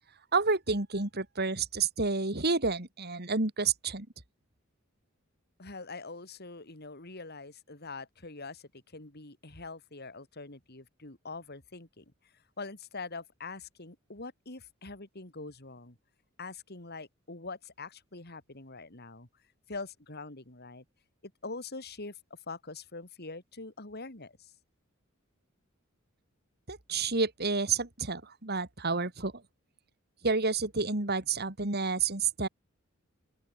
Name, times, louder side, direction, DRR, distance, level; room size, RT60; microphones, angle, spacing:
voice 1, 0.3-4.1 26.7-29.3 30.2-32.5, right 4 dB, 50° right, 3.3 m, -29 dB
voice 2, 5.6-12.1 12.6-16.0 16.4-19.3 19.7-20.8 21.2-24.5, left 3 dB, 50° left, 3.7 m, -44 dB
open air
head